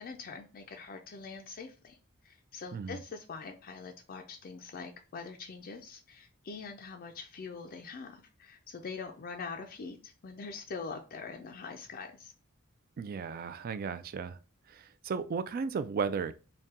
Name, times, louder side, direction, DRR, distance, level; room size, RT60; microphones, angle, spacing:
voice 1, 0.0-2.0 2.2-12.3, left 4 dB, 45° left, 0.4 m, -43 dB
voice 2, 13.0-14.4 14.7-16.4, right 5 dB, 45° right, 0.3 m, -35 dB
4.0 x 2.2 x 3.6 m
head